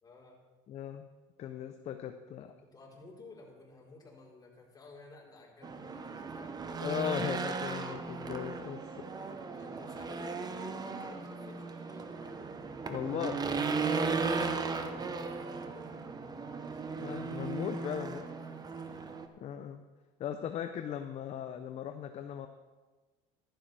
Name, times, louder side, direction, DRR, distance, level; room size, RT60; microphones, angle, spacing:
voice 1, 0.0-0.4 2.4-6.5 8.8-12.4 14.0-16.6 18.0-18.6, left 3 dB, 25° left, -2 dB, 4.2 m, -55 dB
voice 2, 0.7-1.1 1.4-2.5 6.8-8.8 12.8-13.4 17.0-18.2 19.4-19.8 20.2-22.5, left 9 dB, 45° left, 8 dB, 0.7 m, -38 dB
Race car auto racing / Engine, 5.6-19.3, right 4 dB, 25° right, 1.0 m, -36 dB
14.5 x 11.5 x 3.4 m, 1.3 s
supercardioid pair, 95°, 16 cm